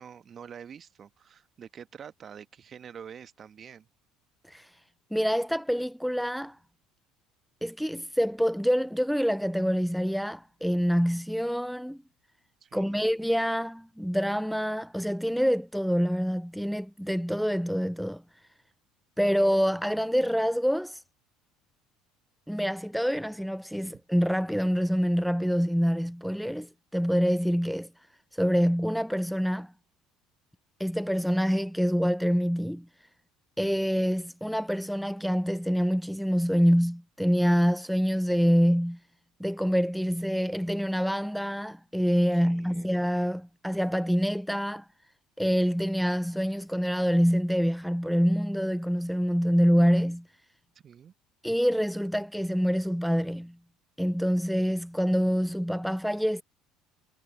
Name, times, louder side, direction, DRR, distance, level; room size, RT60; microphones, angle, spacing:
voice 1, 0.0-3.9 12.6-13.1 42.3-42.9 50.8-51.1, right 8 dB, 40° right, 1.4 m, -46 dB
voice 2, 5.1-6.6 7.6-12.0 12.7-18.2 19.2-21.0 22.5-27.9 28.3-29.7 30.8-32.9 33.6-39.0 39.4-44.9 45.4-50.3 51.4-53.5 54.0-56.4, equal, ahead, 0.4 m, -26 dB
hypercardioid pair, 65°, 0 cm